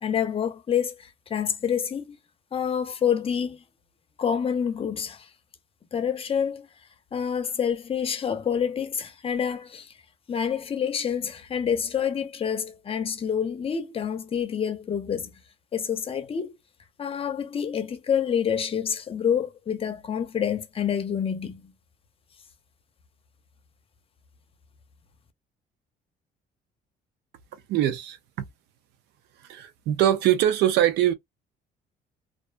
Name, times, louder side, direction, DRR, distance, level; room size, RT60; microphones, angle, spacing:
voice 1, 0.0-2.2 2.5-3.6 4.2-5.3 5.9-6.7 7.1-9.9 10.3-15.4 15.7-16.6 17.0-21.7, left 8 dB, 35° left, 0.6 m, -27 dB
voice 2, 27.7-28.5 29.5-31.1, right 12 dB, 85° right, 0.6 m, -22 dB
2.5 x 2.1 x 2.5 m
cardioid pair, 110°, 17 cm